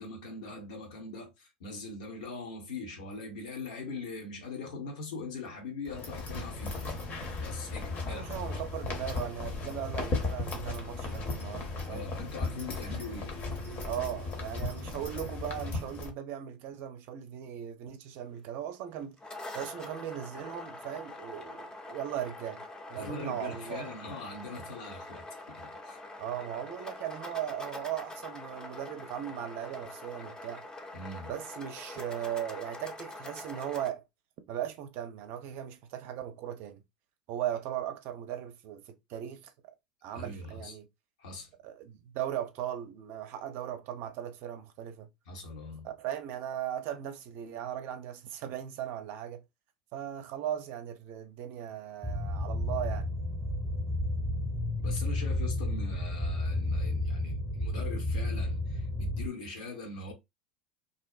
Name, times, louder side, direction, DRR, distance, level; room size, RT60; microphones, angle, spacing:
voice 1, 0.0-6.9 7.4-8.3 11.9-13.4 22.9-26.0 30.9-31.3 40.1-40.8 41.2-41.5 45.3-45.9 54.8-60.1, left 3 dB, 70° left, 0.9 m, -41 dB
sound 1, 5.9-16.1, left 3 dB, 40° left, 0.9 m, -36 dB
voice 2, 8.1-12.1 12.9-13.0 13.8-19.2 19.5-22.6 22.9-23.9 26.2-30.6 31.3-34.0 34.5-36.8 37.3-39.5 40.0-40.9 41.6-45.1 45.8-49.4 49.9-53.1, right 10 dB, 55° right, 0.5 m, -38 dB
sound 2, 19.0-33.9, left 2 dB, 15° left, 0.7 m, -44 dB
sound 3, 52.0-59.3, left 1 dB, 15° right, 0.8 m, -32 dB
2.7 x 2.0 x 2.4 m
hypercardioid pair, 75°, 4 cm